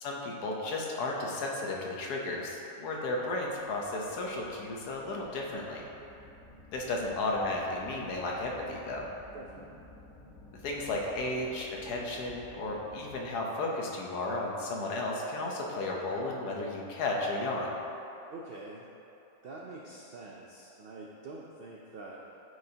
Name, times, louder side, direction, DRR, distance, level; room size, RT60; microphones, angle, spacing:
voice 1, 0.0-5.8 6.7-9.0 10.6-17.7, left 2 dB, 85° left, -1 dB, 1.4 m, -34 dB
sound 1, 3.5-13.5, left 2 dB, 55° left, 1.7 m, -54 dB
voice 2, 9.3-9.8 18.3-18.9 19.4-22.4, right 2 dB, 90° right, -2 dB, 0.5 m, -46 dB
9.0 x 4.7 x 2.8 m, 2.9 s
omnidirectional pair, 1.6 m